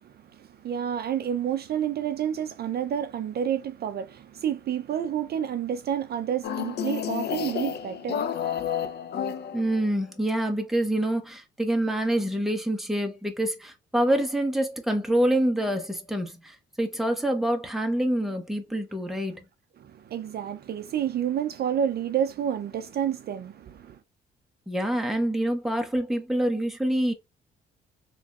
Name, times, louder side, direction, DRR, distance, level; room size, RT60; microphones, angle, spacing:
voice 1, 0.0-8.9 19.8-24.0, right 9 dB, 55° right, 0.5 m, -30 dB
sound 1, 6.4-10.0, left 8 dB, 55° left, 0.5 m, -31 dB
voice 2, 9.5-19.4 24.7-27.1, right 1 dB, ahead, 1.0 m, -26 dB
3.9 x 3.0 x 2.4 m
cardioid pair, 90°, 20 cm